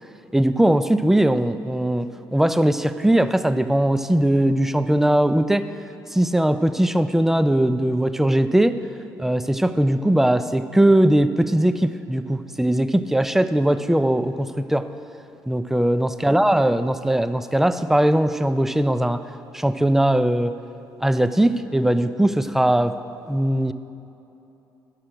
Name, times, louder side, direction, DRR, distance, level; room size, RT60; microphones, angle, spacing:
voice 1, 0.3-5.7 6.1-8.8 9.2-14.9 15.5-19.2 19.5-20.6 21.0-23.0 23.3-23.7, right 1 dB, 5° right, 12 dB, 0.3 m, -20 dB
8.9 x 6.5 x 6.2 m, 2.9 s
figure-of-eight pair, 50°, 11 cm